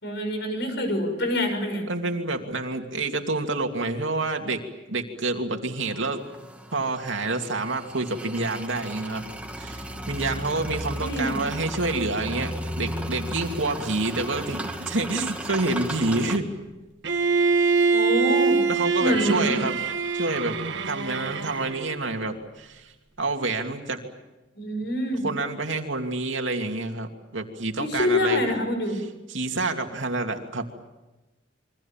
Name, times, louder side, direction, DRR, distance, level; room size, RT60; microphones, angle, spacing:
voice 1, 0.0-1.9 11.0-11.3 17.9-18.6 19.0-19.5 24.6-25.3 27.8-29.0, left 1 dB, 65° left, 6 dB, 6.8 m, -26 dB
voice 2, 1.9-4.6 4.9-6.2 6.7-9.3 9.6-16.5 18.7-19.8 20.1-20.6 20.9-22.9 23.2-24.0 25.2-28.4 29.3-30.7, right 2 dB, 90° right, 4 dB, 2.8 m, -28 dB
sound 1, 5.8-16.4, equal, 5° right, 2.3 m, -35 dB
Bowed string instrument, 17.0-22.0, right 4 dB, 75° right, 1.6 m, -24 dB
28.0 x 24.0 x 7.4 m, 1.1 s
head